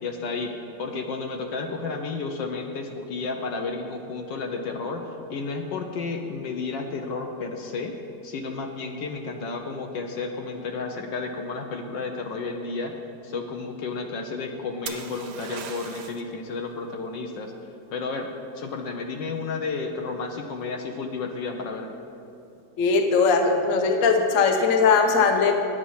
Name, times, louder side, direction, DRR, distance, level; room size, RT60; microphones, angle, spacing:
voice 1, 0.0-7.9 8.2-13.0 13.2-17.5 17.9-21.9, left 4 dB, 70° left, 3 dB, 1.3 m, -32 dB
sound 1, 14.9-16.3 20.0-20.4, right 7 dB, 65° right, 1.1 m, -38 dB
voice 2, 22.8-25.5, left 4 dB, 55° left, 4 dB, 1.0 m, -20 dB
10.5 x 8.2 x 5.6 m, 2.6 s
omnidirectional pair, 2.3 m